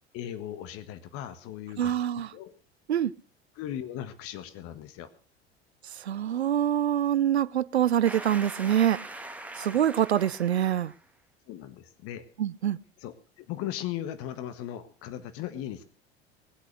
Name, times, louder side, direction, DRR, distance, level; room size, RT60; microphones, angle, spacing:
voice 1, 0.1-1.9 2.3-2.5 3.5-5.1 9.7-9.8 11.5-12.2 13.0-15.8, left 11 dB, 45° left, 1.6 m, -38 dB
voice 2, 1.8-2.3 2.9-3.1 6.0-9.0 9.6-10.9 12.4-12.8, right 10 dB, 75° right, 0.6 m, -25 dB
sound 1, 8.0-11.0, right 2 dB, 5° right, 1.8 m, -41 dB
20.0 x 8.3 x 6.5 m
figure-of-eight pair, 75°, 32 cm